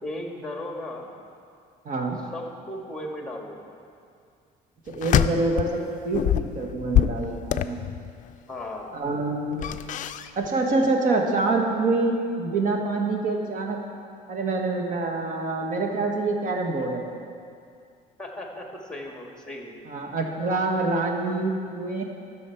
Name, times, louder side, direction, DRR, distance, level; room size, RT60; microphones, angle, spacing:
voice 1, 0.0-1.1 2.3-3.8 8.5-8.9 18.2-19.7, left 1 dB, 5° left, 1 dB, 1.6 m, -36 dB
voice 2, 1.8-2.2 4.9-7.8 8.9-9.8 10.4-13.8 14.3-17.1 19.9-22.0, right 3 dB, 50° right, 2 dB, 1.5 m, -26 dB
sound 1, 4.9-5.8 6.1-8.3 9.5-10.5 10.7-10.9, left 11 dB, 50° left, 0.4 m, -25 dB
13.5 x 6.4 x 4.5 m, 2.3 s
cardioid pair, 110°, 17 cm